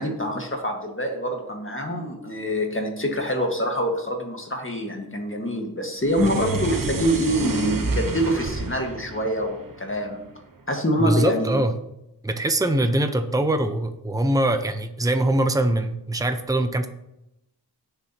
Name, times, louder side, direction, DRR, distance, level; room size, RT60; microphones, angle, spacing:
voice 1, 0.0-10.3 10.7-11.6, equal, 30° left, 2 dB, 1.7 m, -25 dB
sound 1, 6.0-10.4, right 3 dB, 55° right, 1.1 m, -30 dB
voice 2, 11.0-11.8 12.2-16.9, right 1 dB, 10° right, 8 dB, 0.8 m, -22 dB
17.5 x 6.8 x 3.0 m, 0.86 s
wide cardioid pair, 65°, 41 cm